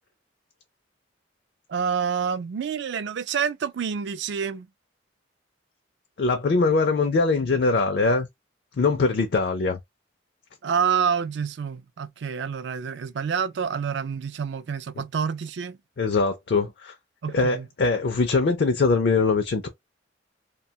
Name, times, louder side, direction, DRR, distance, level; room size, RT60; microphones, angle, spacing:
voice 1, 1.7-4.7 10.6-15.8 17.2-17.7, right 7 dB, 65° right, 0.4 m, -28 dB
voice 2, 6.2-8.3 8.8-9.8 16.0-16.9 17.3-19.7, left 3 dB, 60° left, 0.4 m, -22 dB
2.6 x 2.2 x 2.8 m
head